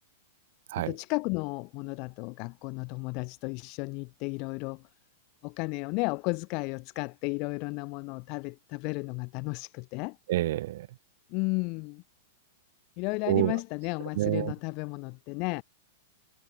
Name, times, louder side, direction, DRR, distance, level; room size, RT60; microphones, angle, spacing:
voice 1, 0.9-4.9 5.4-10.2 11.3-12.0 13.0-15.6, left 30 dB, 45° left, 6.7 m, -33 dB
voice 2, 10.3-10.9 13.3-13.6 14.2-14.5, right 15 dB, 65° right, 3.8 m, -27 dB
hypercardioid pair, 135°, 0 cm